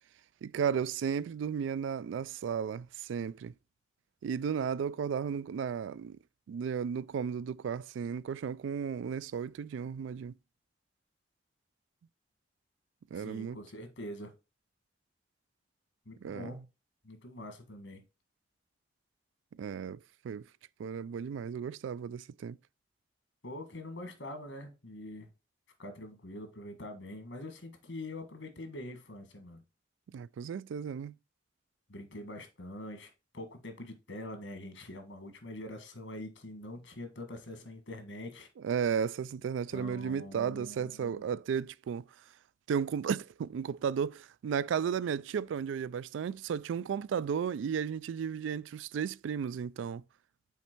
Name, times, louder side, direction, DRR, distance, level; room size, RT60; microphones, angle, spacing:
voice 1, 0.4-3.5 4.2-6.2 6.5-10.3 13.1-13.6 16.2-16.6 19.6-20.5 20.8-22.6 30.1-31.1 38.6-42.1 42.7-50.0, right 7 dB, 90° right, 0.3 m, -34 dB
voice 2, 13.1-14.3 16.0-16.6 17.0-18.0 23.4-25.3 25.8-29.6 31.9-38.5 39.7-41.2, left 1 dB, 85° left, 1.6 m, -44 dB
5.8 x 4.3 x 4.4 m
head